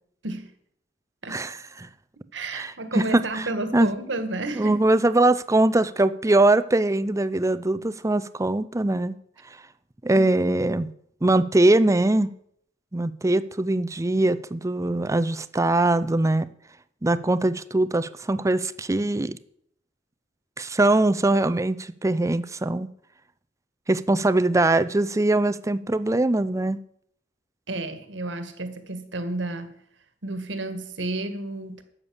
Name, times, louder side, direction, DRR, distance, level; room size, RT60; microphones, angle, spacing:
voice 1, 1.3-1.9 2.5-3.0 3.4-3.5 3.7-3.9 4.6-9.1 10.0-10.9 11.2-12.3 12.9-16.5 17.0-19.4 20.6-22.9 23.9-26.8, right 2 dB, 15° right, 14 dB, 0.5 m, -22 dB
voice 2, 2.3-4.8 10.1-10.2 27.7-29.8 30.2-31.8, right 2 dB, 80° right, 9 dB, 1.8 m, -31 dB
12.5 x 8.3 x 7.0 m, 0.68 s
head